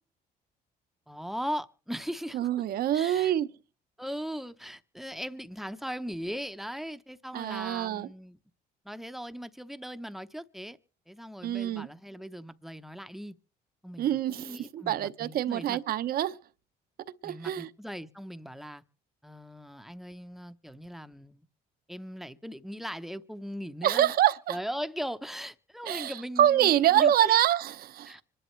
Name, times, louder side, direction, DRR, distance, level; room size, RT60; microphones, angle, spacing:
voice 1, 1.1-2.5 2.9-3.3 4.0-8.4 8.8-10.8 11.1-13.3 13.8-15.8 17.2-18.8 19.2-21.5 21.9-24.1 24.5-27.4 28.1-28.2, equal, ahead, 0.7 m, -39 dB
voice 2, 2.3-3.5 7.3-8.1 11.4-11.9 14.0-16.4 17.2-17.7 23.8-24.6 25.8-26.1 26.4-28.2, right 11 dB, 60° right, 0.9 m, -25 dB
25.5 x 11.0 x 3.2 m
cardioid pair, 110°, 17 cm